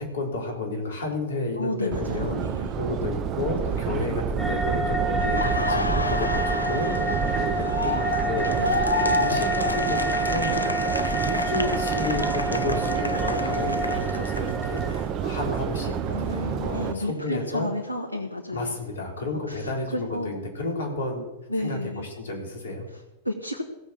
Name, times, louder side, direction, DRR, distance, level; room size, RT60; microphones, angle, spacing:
voice 1, 0.0-10.0 10.3-17.7 18.5-21.3 21.6-22.9, left 2 dB, 65° left, 1 dB, 3.9 m, -32 dB
voice 2, 1.5-2.7 3.7-3.8 8.6-8.9 16.1-18.8 19.5-20.4 21.5-22.1 22.9-23.6, left 1 dB, 90° right, 1 dB, 1.3 m, -32 dB
Subway metro underground, 1.9-16.9, right 8 dB, 35° right, 0.8 m, -29 dB
sound 1, 4.4-14.9, right 1 dB, 5° right, 3.2 m, -29 dB
Laughter, 5.2-15.0 15.3-17.4, left 2 dB, 85° left, 0.7 m, -31 dB
16.0 x 6.9 x 7.6 m, 0.96 s
figure-of-eight pair, 90°, 0 cm